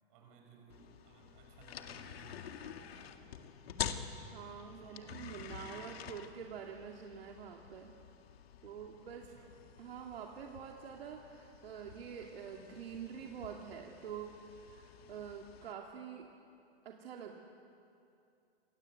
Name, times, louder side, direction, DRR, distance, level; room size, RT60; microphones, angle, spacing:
voice 1, 0.1-3.3 4.7-6.4 9.1-9.6, right 4 dB, 30° right, 2 dB, 6.2 m, -61 dB
sound 1, 0.7-15.7, left 9 dB, 60° left, 2.0 m, -48 dB
voice 2, 4.3-7.9 8.6-9.3 9.8-16.3 16.8-17.4, right 7 dB, 60° right, 1 dB, 2.5 m, -46 dB
28.0 x 24.0 x 8.1 m, 2.6 s
hypercardioid pair, 175°, 34 cm